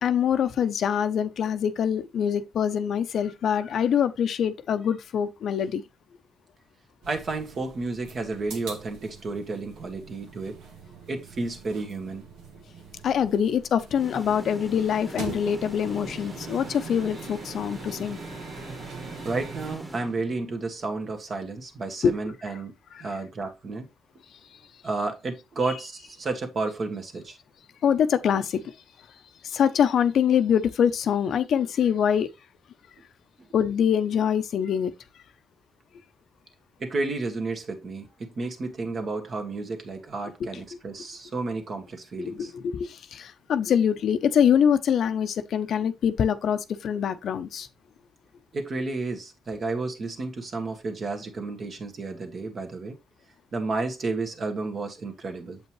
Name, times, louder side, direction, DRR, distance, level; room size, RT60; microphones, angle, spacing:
voice 1, 0.0-5.8 13.0-18.2 22.0-22.1 22.9-23.1 27.8-28.6 29.4-32.3 33.5-34.9 42.2-47.7, left 8 dB, 65° left, 0.6 m, -24 dB
sound 1, 7.0-19.8, right 5 dB, 90° right, 1.7 m, -43 dB
voice 2, 7.1-10.6 11.1-12.2 19.2-22.7 23.0-23.9 24.8-27.4 36.8-42.5 48.5-53.0 53.5-55.6, right 3 dB, 45° right, 1.7 m, -31 dB
sound 2, 14.0-20.7, right 1 dB, 15° right, 1.6 m, -41 dB
7.5 x 5.3 x 3.1 m
cardioid pair, 90°, 0 cm